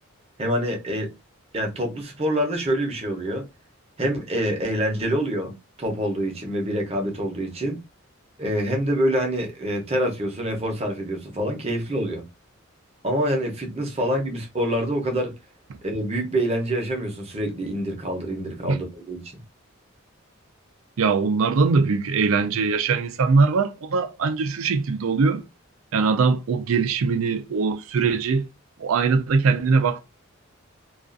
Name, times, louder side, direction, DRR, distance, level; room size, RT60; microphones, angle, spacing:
voice 1, 0.4-1.1 1.5-3.5 4.0-7.8 8.4-12.2 13.0-15.4 15.8-19.3, equal, 30° right, 0.7 m, -26 dB
voice 2, 21.0-25.4 25.9-28.5 28.8-30.0, right 4 dB, 75° right, 0.4 m, -21 dB
2.4 x 2.3 x 2.4 m
head